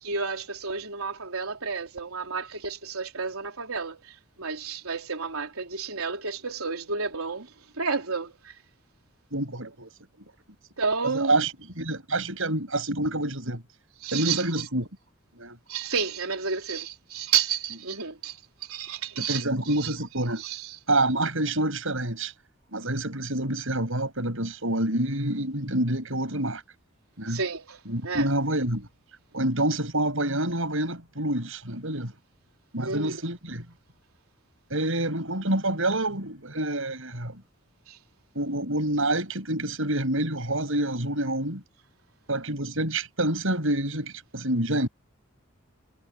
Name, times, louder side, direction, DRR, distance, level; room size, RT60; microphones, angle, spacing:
voice 1, 0.0-4.1 4.4-7.5 7.8-8.5 10.8-11.5 14.0-14.6 15.7-18.4 18.6-19.4 19.8-19.9 20.4-20.7 27.3-28.3 32.8-33.2 37.9-38.0, right 5 dB, 85° right, 4.0 m, -31 dB
voice 2, 9.3-9.9 11.0-11.5 11.8-13.6 14.1-14.9 15.3-15.6 19.2-20.4 20.9-22.3 22.7-26.6 27.2-27.4 27.9-28.9 29.3-32.1 32.7-33.6 34.7-37.4 38.3-41.6 42.3-44.9, right 1 dB, 65° right, 7.6 m, -27 dB
head